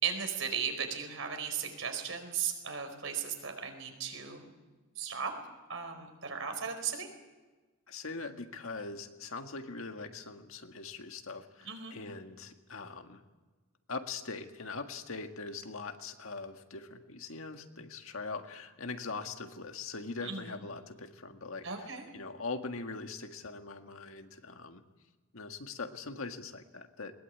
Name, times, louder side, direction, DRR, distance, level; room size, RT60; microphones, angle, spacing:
voice 1, 0.0-4.5 5.0-5.3 5.7-7.1 11.6-12.0 20.2-20.4 21.6-22.0, right 7 dB, 70° right, 5 dB, 4.7 m, -36 dB
voice 2, 7.9-13.2 13.9-24.8 25.3-27.1, left 3 dB, 85° left, 6 dB, 1.8 m, -42 dB
21.0 x 20.0 x 8.5 m, 1.3 s
head